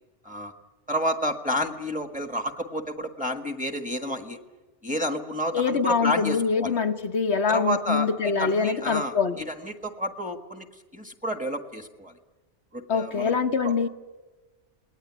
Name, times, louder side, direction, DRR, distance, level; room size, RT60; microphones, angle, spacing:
voice 1, 0.9-4.4 4.8-6.7 7.5-10.7 10.9-12.1 12.7-13.3 13.6-13.7, equal, 5° right, 6 dB, 1.6 m, -30 dB
voice 2, 5.5-9.4 12.9-13.9, left 5 dB, 65° left, 5 dB, 1.3 m, -24 dB
27.5 x 20.0 x 9.9 m, 1.3 s
omnidirectional pair, 1.2 m